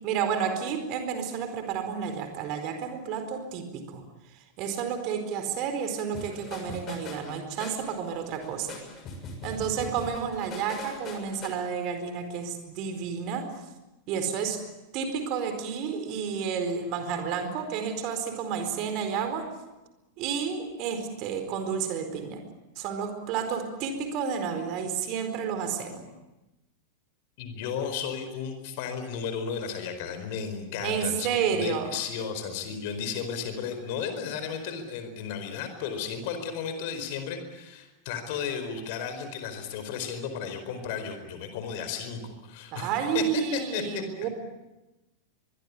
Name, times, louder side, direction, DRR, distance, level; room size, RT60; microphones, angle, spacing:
voice 1, 0.0-4.0 4.6-8.8 9.4-13.5 14.1-14.6 14.9-19.5 20.2-22.4 22.8-26.0 30.8-31.9 42.7-44.3, right 7 dB, 40° right, 8 dB, 4.5 m, -31 dB
sound 1, 6.1-11.5, left 3 dB, 30° left, 6.7 m, -41 dB
voice 2, 27.4-42.9 43.1-44.0, left 7 dB, 50° left, 8 dB, 4.7 m, -34 dB
24.5 x 22.0 x 8.5 m, 1.0 s
figure-of-eight pair, 90°, 0 cm